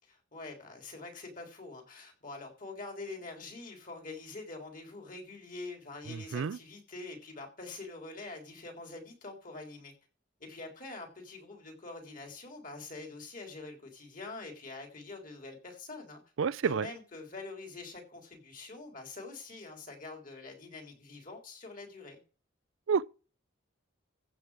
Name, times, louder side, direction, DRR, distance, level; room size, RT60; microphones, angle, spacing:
voice 1, 0.0-9.9 10.4-16.2 16.6-22.2, left 3 dB, 40° left, 3.5 m, -45 dB
voice 2, 6.1-6.6 16.4-16.9 22.9-23.1, right 6 dB, 75° right, 0.4 m, -29 dB
15.0 x 6.8 x 4.8 m
head